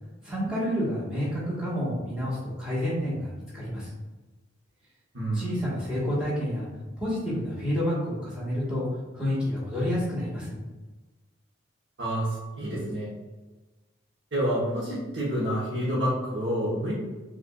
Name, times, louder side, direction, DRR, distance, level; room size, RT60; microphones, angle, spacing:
voice 1, 0.2-3.9 5.3-6.7 7.0-8.8 9.1-10.6, equal, 5° right, -9 dB, 1.3 m, -29 dB
voice 2, 5.1-5.5 12.0-13.1 14.3-16.9, right 1 dB, 60° right, -8 dB, 0.9 m, -28 dB
5.0 x 2.4 x 2.3 m, 1.2 s
head